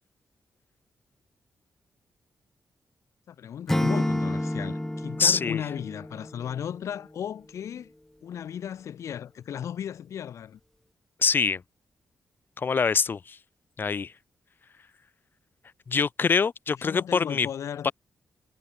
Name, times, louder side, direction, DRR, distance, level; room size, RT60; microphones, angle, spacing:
voice 1, 3.3-7.9 8.2-10.6 16.9-17.9, left 9 dB, 80° left, 3.0 m, -35 dB
Acoustic guitar / Strum, 3.7-6.8, left 1 dB, 5° left, 0.6 m, -29 dB
voice 2, 5.2-5.6 11.2-11.6 12.6-13.4 13.8-14.1 15.9-17.5 17.8-17.9, left 5 dB, 45° left, 1.2 m, -24 dB
cardioid pair, 105°, 5 cm